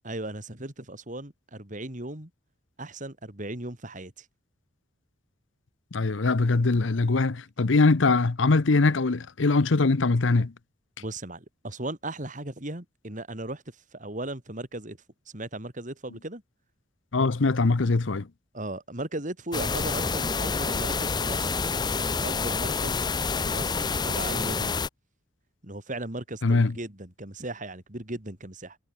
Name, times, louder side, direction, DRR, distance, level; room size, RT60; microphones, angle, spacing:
voice 1, 0.0-2.3 2.8-4.3 11.0-15.0 15.3-16.4 18.5-21.6 21.9-23.1 23.5-24.8 25.6-28.8, right 1 dB, 40° right, 3.7 m, -37 dB
voice 2, 5.9-10.5 17.1-18.3 26.4-26.7, left 3 dB, 80° left, 0.8 m, -22 dB
sound 1, 19.5-24.9, left 4 dB, 20° left, 0.6 m, -28 dB
head